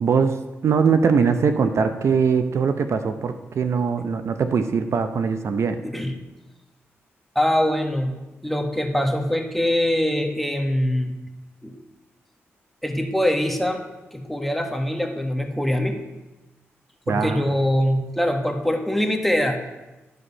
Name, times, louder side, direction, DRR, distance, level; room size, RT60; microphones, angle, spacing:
voice 1, 0.0-5.8 17.1-17.5, right 5 dB, 65° right, 9 dB, 0.6 m, -21 dB
voice 2, 5.8-6.1 7.3-8.2 8.4-11.1 11.6-11.8 12.8-13.8 14.1-16.0 17.1-19.6, left 1 dB, 5° left, 4 dB, 1.4 m, -23 dB
11.5 x 5.2 x 5.5 m, 1.1 s
cardioid pair, 55°, 5 cm